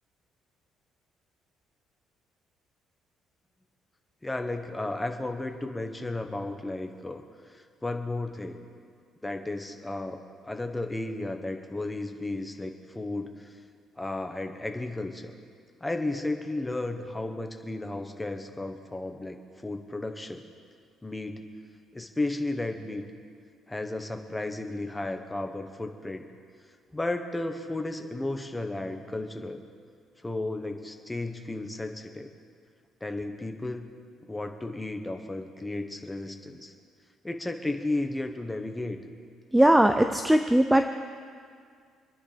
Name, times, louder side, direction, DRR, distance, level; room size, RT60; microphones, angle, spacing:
voice 1, 4.2-8.6 9.2-13.5 14.0-15.3 15.8-20.4 21.0-21.4 21.9-23.0 23.7-26.2 26.9-29.6 30.2-32.3 33.0-33.9 34.3-36.7 37.2-39.0, left 2 dB, 10° left, 5 dB, 1.3 m, -34 dB
voice 2, 39.5-40.8, right 1 dB, 5° right, 7 dB, 0.6 m, -20 dB
26.5 x 10.5 x 5.2 m, 2.1 s
cardioid pair, 150°, 0 cm